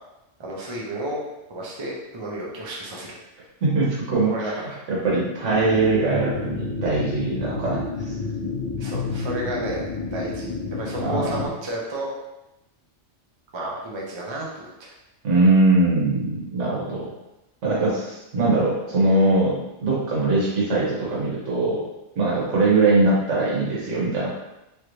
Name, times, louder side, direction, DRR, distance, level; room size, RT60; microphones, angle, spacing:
voice 1, 0.4-1.2 1.5-3.1 4.3-4.8 8.8-12.1 13.5-14.9, right 1 dB, 35° right, -3 dB, 0.5 m, -32 dB
voice 2, 3.6-4.3 4.9-7.8 11.0-11.4 15.2-17.0 17.6-21.8 22.2-24.3, right 2 dB, 85° right, -5 dB, 1.4 m, -21 dB
sound 1, 5.5-11.5, left 3 dB, 50° left, 1.1 m, -30 dB
3.1 x 2.6 x 3.0 m, 0.94 s
omnidirectional pair, 1.2 m